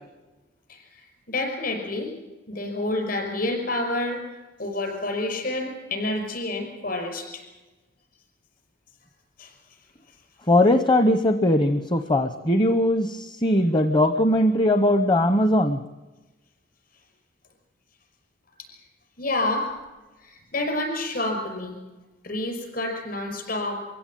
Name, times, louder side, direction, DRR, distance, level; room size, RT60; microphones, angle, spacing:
voice 1, 1.3-2.1 2.5-4.2 4.6-7.4 9.4-9.5 19.2-19.7 20.2-21.8 22.2-23.8, left 2 dB, 50° left, 3 dB, 5.7 m, -28 dB
voice 2, 10.5-15.8, left 1 dB, 25° left, 9 dB, 0.9 m, -20 dB
23.5 x 16.0 x 9.1 m, 1.2 s
head